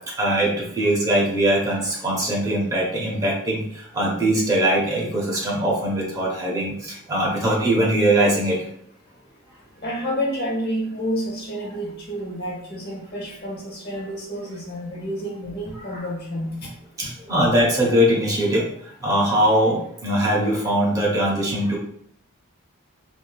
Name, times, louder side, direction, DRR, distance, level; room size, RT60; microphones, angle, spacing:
voice 1, 0.2-3.6 3.9-8.6 15.9-16.1 17.0-18.7 19.0-21.8, right 1 dB, 15° right, -4 dB, 0.8 m, -21 dB
voice 2, 9.8-16.7 17.0-17.1, equal, 45° left, -2 dB, 0.8 m, -29 dB
3.5 x 2.5 x 2.2 m, 0.68 s
head